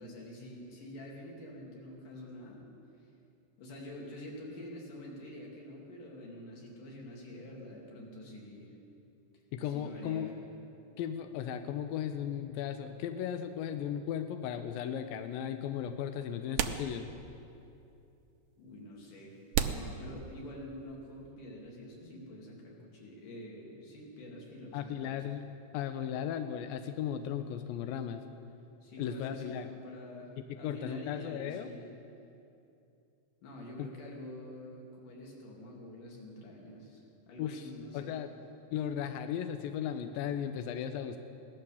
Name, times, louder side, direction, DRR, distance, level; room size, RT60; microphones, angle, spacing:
voice 1, 0.0-2.7 3.6-8.7 9.6-10.4 18.6-19.4 19.7-25.2 28.8-31.9 33.4-38.1, left 1 dB, 55° left, -2 dB, 3.7 m, -47 dB
voice 2, 9.5-10.3 11.0-17.1 24.7-28.2 29.0-29.7 30.4-31.7 33.8-33.9 37.4-38.3 38.7-41.2, left 9 dB, 85° left, 8 dB, 2.1 m, -36 dB
sound 1, 14.7-14.8 15.9-16.0 16.5-17.5 17.8-17.9 18.6-18.7 19.5-20.8, right 9 dB, 85° right, 1.9 m, -34 dB
17.5 x 12.0 x 7.0 m, 2.7 s
omnidirectional pair, 4.7 m